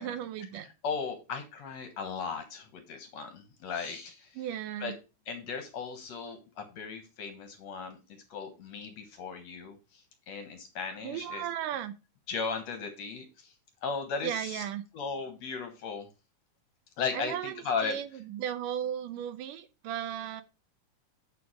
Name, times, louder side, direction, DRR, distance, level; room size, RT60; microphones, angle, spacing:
voice 1, 0.0-0.7 4.4-4.9 11.0-11.9 14.2-14.8 17.1-17.5 17.8-20.4, right 10 dB, 80° right, 12 dB, 2.1 m, -35 dB
voice 2, 0.8-4.4 4.8-4.9 5.3-11.5 12.3-13.5 13.8-14.6 14.9-16.1 17.0-18.0, left 5 dB, 60° left, 7 dB, 2.1 m, -36 dB
10.5 x 4.8 x 4.9 m, 0.30 s
omnidirectional pair, 4.0 m